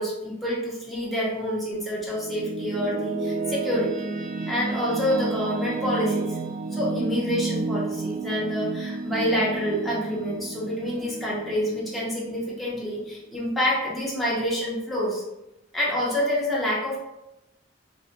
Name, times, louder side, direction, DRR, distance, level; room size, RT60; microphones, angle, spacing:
voice 1, 0.0-4.1 4.5-6.4 6.7-15.2 15.7-17.0, equal, ahead, -7 dB, 0.6 m, -27 dB
sound 1, 1.7-13.0, right 3 dB, 45° right, 0.3 m, -31 dB
2.5 x 2.0 x 2.5 m, 0.90 s
head